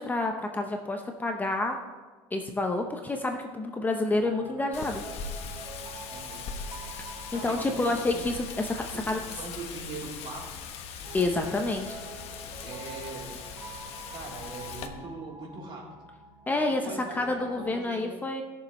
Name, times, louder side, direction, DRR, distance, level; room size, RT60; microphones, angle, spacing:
voice 1, 0.0-1.8 2.3-5.0 7.3-8.7 9.1-9.2 11.1-12.0 16.5-18.4, left 2 dB, 15° left, 4 dB, 0.7 m, -28 dB
Piano, 4.1-17.9, right 2 dB, 25° right, 2.2 m, -47 dB
Wind, 4.7-14.9, left 6 dB, 55° left, 1.1 m, -40 dB
voice 2, 6.1-6.5 7.3-8.2 8.9-10.6 12.6-13.3 14.1-16.0 16.5-18.1, right 3 dB, 45° right, -3 dB, 3.3 m, -41 dB
20.0 x 7.0 x 3.1 m, 1.3 s
cardioid pair, 125°, 12 cm